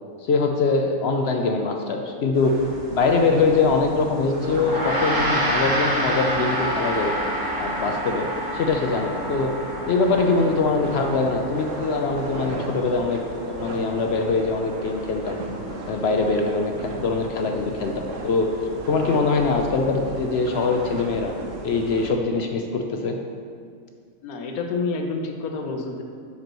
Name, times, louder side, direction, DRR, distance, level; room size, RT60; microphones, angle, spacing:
voice 1, 0.2-2.5 2.9-7.1 7.6-8.3 8.5-9.5 9.9-15.4 15.8-18.5 18.9-21.3 21.6-23.2, left 4 dB, 65° left, 3 dB, 0.7 m, -23 dB
sound 1, 2.3-22.1, right 2 dB, 65° right, 1.2 m, -36 dB
Gong, 4.6-14.2, right 1 dB, 20° right, 0.8 m, -28 dB
voice 2, 24.2-26.0, left 3 dB, 90° left, 3 dB, 1.2 m, -28 dB
7.8 x 6.8 x 3.0 m, 2.1 s
omnidirectional pair, 1.5 m